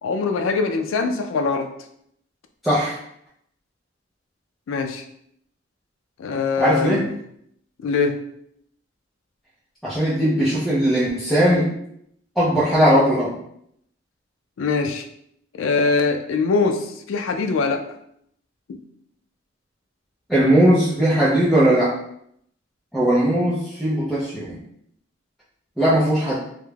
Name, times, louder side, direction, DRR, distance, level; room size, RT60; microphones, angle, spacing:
voice 1, 0.0-1.7 4.7-5.0 6.2-7.1 7.8-8.2 14.6-15.1 15.6-17.8 18.7-18.8, left 4 dB, 70° left, 6 dB, 0.3 m, -22 dB
voice 2, 2.6-3.0 6.6-7.0 9.8-11.7 12.4-13.4 20.3-22.0 22.9-24.6 25.8-26.4, right 1 dB, ahead, -11 dB, 0.4 m, -18 dB
2.3 x 2.1 x 3.1 m, 0.71 s
head